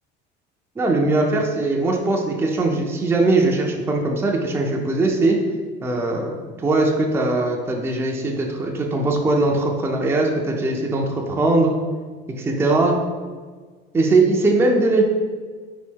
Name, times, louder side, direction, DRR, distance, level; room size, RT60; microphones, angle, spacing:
voice 1, 0.8-5.4 5.8-11.7 12.4-13.0 13.9-15.0, right 2 dB, 10° right, 0 dB, 0.4 m, -20 dB
4.0 x 2.7 x 3.6 m, 1.5 s
cardioid pair, 130°, 20 cm